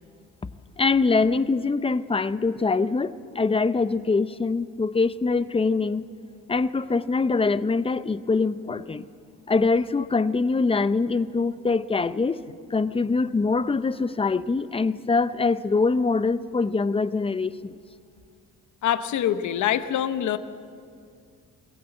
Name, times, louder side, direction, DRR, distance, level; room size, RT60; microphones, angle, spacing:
voice 1, 0.8-6.1 6.5-9.0 9.5-12.4 12.7-17.8, left 4 dB, 20° left, 14 dB, 0.7 m, -23 dB
voice 2, 18.8-20.4, left 10 dB, 75° left, 11 dB, 1.0 m, -24 dB
22.0 x 17.5 x 7.9 m, 2.2 s
cardioid pair, 90°, 30 cm